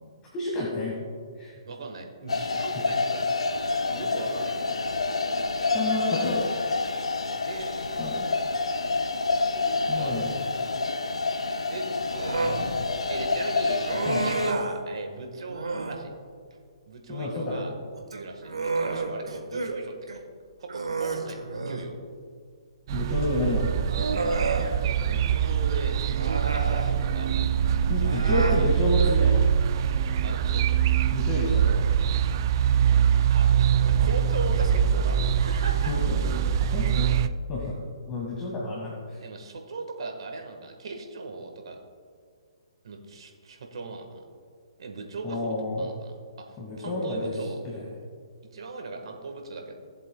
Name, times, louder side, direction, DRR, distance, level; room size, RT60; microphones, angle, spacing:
voice 1, 0.3-1.0 1.4-1.5 5.5-6.4 8.0-8.3 9.9-10.3 14.1-14.2 17.1-17.6 22.9-24.3 27.9-29.4 31.1-31.9 35.9-36.2 36.6-37.1 37.5-37.7 38.1-39.2 45.2-45.8 46.6-47.3 47.6-47.8, left 2 dB, 25° left, -4 dB, 1.8 m, -30 dB
voice 2, 1.6-3.2 3.9-4.8 7.4-8.3 8.7-8.9 9.4-10.2 11.7-11.9 12.4-12.7 13.1-16.1 16.9-20.0 20.6-21.4 21.7-22.0 24.8-27.3 27.8-28.7 30.2-30.6 33.3-35.9 39.2-41.8 42.8-44.2 44.8-46.4 46.8-47.6 48.5-49.7, right 3 dB, 65° right, 3 dB, 1.4 m, -38 dB
sound 1, 2.3-14.5, left 3 dB, 85° left, 0.7 m, -28 dB
Human voice, 12.1-12.6 13.9-14.8 15.5-16.0 18.0-19.7 20.1-20.2 20.7-21.9 23.1-23.2 23.9-24.7 26.1-26.9 28.0-28.6, right 3 dB, 85° right, 1.2 m, -30 dB
sound 2, 22.9-37.3, right 8 dB, 45° right, 0.4 m, -23 dB
17.5 x 7.6 x 2.2 m, 2.1 s
hypercardioid pair, 135°, 3 cm